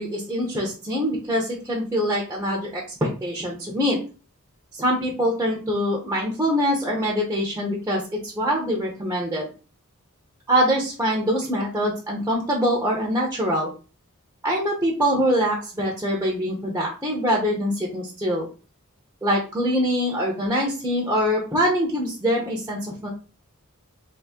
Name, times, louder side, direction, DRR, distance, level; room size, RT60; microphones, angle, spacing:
voice 1, 0.0-4.0 4.7-9.5 10.5-13.7 14.4-18.5 19.2-23.1, equal, 10° right, -2 dB, 0.7 m, -24 dB
2.8 x 2.7 x 3.5 m, 0.35 s
head